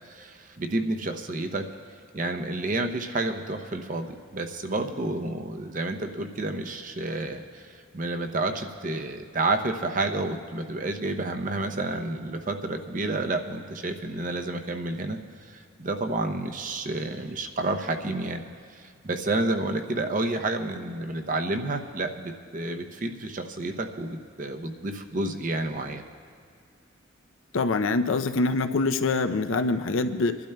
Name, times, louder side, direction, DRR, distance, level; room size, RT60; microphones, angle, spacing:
voice 1, 0.1-1.6 2.1-18.4 18.7-26.0, right 2 dB, 40° right, 5 dB, 0.6 m, -30 dB
voice 2, 27.5-30.4, left 3 dB, 70° left, 8 dB, 0.5 m, -24 dB
27.0 x 12.0 x 2.2 m, 2.3 s
head